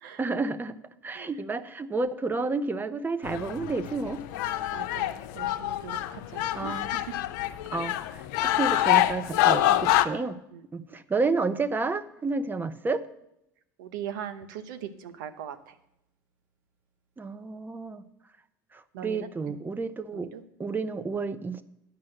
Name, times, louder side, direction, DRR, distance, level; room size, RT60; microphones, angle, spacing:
voice 1, 0.2-0.7 1.0-4.2 6.6-6.9 7.7-10.4 10.7-13.0 17.2-18.0 19.0-20.3 20.6-21.6, right 3 dB, 20° right, 12 dB, 0.8 m, -30 dB
sound 1, 3.2-10.1, left 13 dB, 70° left, 0.6 m, -26 dB
voice 2, 4.7-6.9 7.7-7.8 10.5-10.9 13.8-15.7 18.9-19.3 20.1-20.4, right 9 dB, 80° right, 10 dB, 1.0 m, -40 dB
10.0 x 5.5 x 7.8 m, 0.82 s
hypercardioid pair, 90°, 10 cm